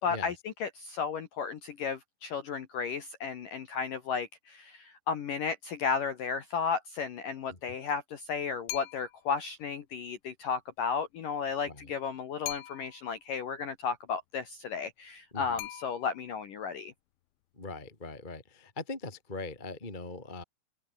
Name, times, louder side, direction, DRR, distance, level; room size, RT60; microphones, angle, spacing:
voice 1, 0.0-16.9, left 6 dB, 60° left, 2.6 m, -34 dB
sound 1, 8.7-9.3 12.5-13.2 15.6-16.4, left 16 dB, 80° left, 3.7 m, -41 dB
voice 2, 17.5-20.4, left 3 dB, 10° left, 2.8 m, -41 dB
open air
omnidirectional pair, 5.5 m